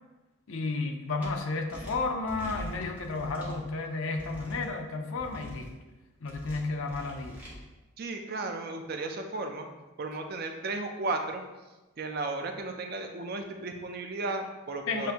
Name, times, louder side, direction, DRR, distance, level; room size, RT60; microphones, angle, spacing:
voice 1, 0.5-5.7 6.2-7.4 14.9-15.1, left 3 dB, 65° left, 4 dB, 0.5 m, -32 dB
sound 1, 1.2-1.3 1.7-3.6 4.1-4.7 5.1-5.7 6.2-7.5, equal, 5° right, 0.8 m, -44 dB
voice 2, 8.0-9.7 10.0-11.4 12.0-15.1, right 3 dB, 45° right, 5 dB, 0.4 m, -34 dB
7.2 x 2.6 x 2.8 m, 1.1 s
head